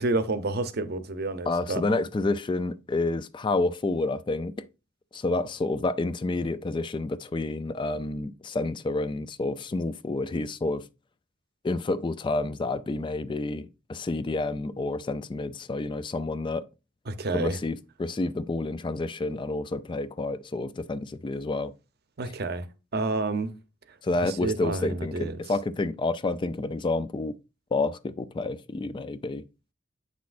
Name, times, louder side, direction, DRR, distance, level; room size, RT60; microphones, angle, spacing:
voice 1, 0.0-1.8 17.1-17.6 22.2-22.7 22.9-23.5 24.2-25.3, right 3 dB, 55° right, 0.7 m, -29 dB
voice 2, 1.5-4.7 5.1-10.9 11.6-16.7 17.3-21.7 24.0-27.4 27.7-29.5, left 2 dB, 25° left, 0.3 m, -29 dB
8.3 x 6.1 x 2.5 m
head